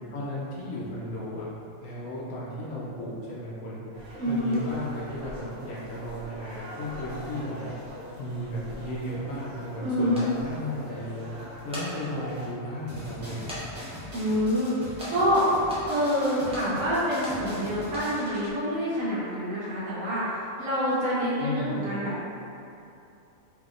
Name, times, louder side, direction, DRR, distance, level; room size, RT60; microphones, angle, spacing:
voice 1, 0.1-1.5 1.8-3.8 4.3-7.7 8.2-11.3 11.6-13.5 21.4-21.8, left 1 dB, 75° left, -7 dB, 1.0 m, -34 dB
sound 1, 3.9-12.5, equal, 55° right, 0.7 m, -43 dB
voice 2, 4.2-4.6 9.8-10.3 14.1-15.4 15.9-22.3, equal, 75° right, -9 dB, 1.2 m, -27 dB
sound 2, 10.1-10.3 11.5-11.9 12.5-12.6 13.5-13.6 13.9-14.0 15.0-15.1 15.7-15.8 16.5-16.7 17.2-17.4 17.8-18.1, left 1 dB, 5° right, 0.4 m, -38 dB
sound 3, 12.9-18.5, left 1 dB, 35° right, 1.1 m, -41 dB
3.4 x 2.9 x 2.4 m, 2.8 s
omnidirectional pair, 1.4 m